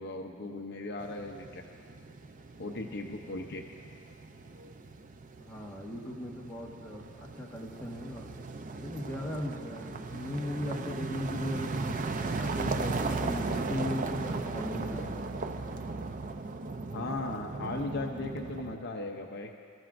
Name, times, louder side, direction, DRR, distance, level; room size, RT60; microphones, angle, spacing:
voice 1, 0.0-1.6 2.6-3.6 16.9-19.5, left 2 dB, 50° left, 2 dB, 0.7 m, -37 dB
sound 1, 1.0-18.8, right 3 dB, 35° right, 0.5 m, -37 dB
voice 2, 5.4-8.3 8.8-12.0 12.4-15.5, left 1 dB, 10° left, -4 dB, 1.4 m, -38 dB
26.5 x 13.5 x 2.6 m, 2.3 s
head